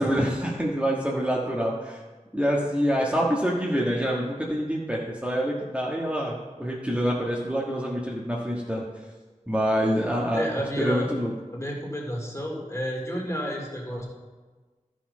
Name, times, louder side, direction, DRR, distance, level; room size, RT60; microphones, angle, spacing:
voice 1, 0.0-2.0 2.3-8.8 9.5-11.3, equal, 10° right, -4 dB, 1.5 m, -26 dB
voice 2, 10.3-11.1 11.5-14.1, equal, 20° left, -1 dB, 2.6 m, -31 dB
12.5 x 6.3 x 5.5 m, 1.3 s
wide cardioid pair, 45°, 13 cm